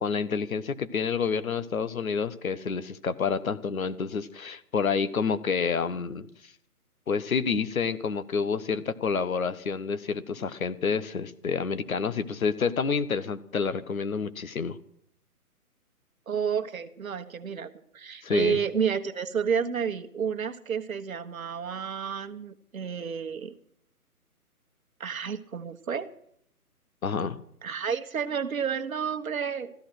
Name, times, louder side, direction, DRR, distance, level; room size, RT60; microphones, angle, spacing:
voice 1, 0.0-6.3 7.1-14.8 18.2-18.6 27.0-27.4, left 5 dB, 65° left, 13 dB, 1.3 m, -28 dB
voice 2, 16.3-23.5 25.0-26.1 27.6-29.7, right 7 dB, 65° right, 7 dB, 1.4 m, -30 dB
14.5 x 13.0 x 6.2 m, 0.68 s
figure-of-eight pair, 145°, 45 cm